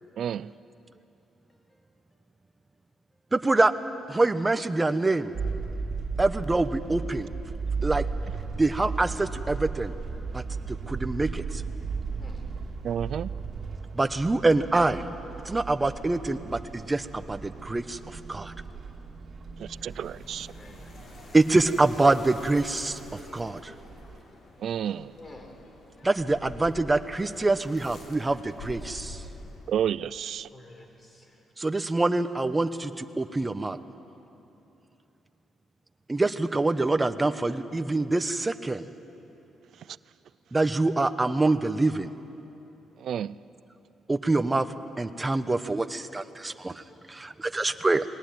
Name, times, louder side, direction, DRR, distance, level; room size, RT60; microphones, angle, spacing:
voice 1, 0.2-0.5 12.8-13.3 19.6-20.5 24.6-25.1 29.7-30.5 43.0-43.3, right 9 dB, 65° right, 19 dB, 0.4 m, -30 dB
voice 2, 3.3-3.7 4.1-5.3 6.2-7.3 7.8-8.0 8.5-9.9 10.3-10.4 10.7-11.6 13.9-15.0 15.5-18.0 18.3-18.5 21.3-23.0 23.3-23.7 26.0-29.2 31.6-33.8 36.1-38.8 40.5-42.1 44.1-44.7 45.0-46.7 47.1-48.0, right 2 dB, 20° right, 11 dB, 1.0 m, -25 dB
sound 1, 5.3-24.2, right 4 dB, 45° right, 2.5 m, -36 dB
sound 2, 19.5-29.9, left 2 dB, 50° left, 3.2 m, -47 dB
voice 3, 20.4-20.9 25.2-25.5 30.5-31.4 46.5-47.0, left 1 dB, 30° left, 3 dB, 4.4 m, -50 dB
20.5 x 19.0 x 9.3 m, 2.9 s
cardioid pair, 90°, 0 cm